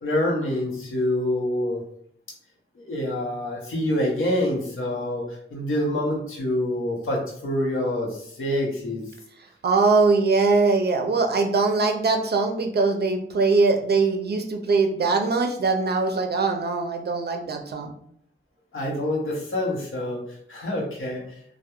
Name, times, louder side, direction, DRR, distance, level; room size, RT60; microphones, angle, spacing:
voice 1, 0.0-1.8 2.8-9.0 18.7-20.2 20.5-21.2, left 1 dB, 85° left, -1 dB, 0.8 m, -26 dB
voice 2, 9.6-17.9, right 3 dB, 55° right, 4 dB, 0.4 m, -22 dB
2.2 x 2.1 x 2.9 m, 0.66 s
wide cardioid pair, 115°, 20 cm